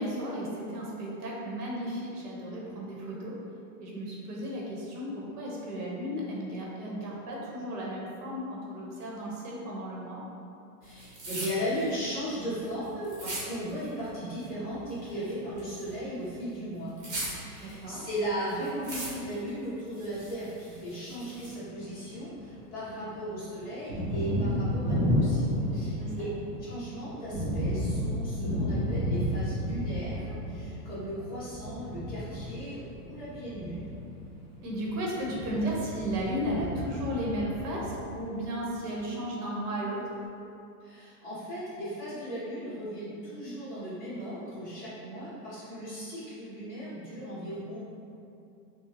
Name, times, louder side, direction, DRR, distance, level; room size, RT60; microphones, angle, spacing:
voice 1, 0.0-3.4 3.8-10.2 17.6-18.0 25.5-25.7 25.9-26.3 34.6-40.0, equal, 70° right, -4 dB, 1.2 m, -34 dB
voice 2, 10.8-16.9 17.3-26.2 26.6-33.9 40.8-47.8, equal, 20° left, -12 dB, 1.1 m, -37 dB
sound 1, 10.8-14.1 14.3-16.0 16.3-18.2 18.5-19.5 19.9-21.5, right 2 dB, 35° right, 1.1 m, -40 dB
Thunder, 21.6-22.8 23.1-38.4, equal, ahead, 0.5 m, -32 dB
5.4 x 2.3 x 2.9 m, 2.7 s
supercardioid pair, 155°, 47 cm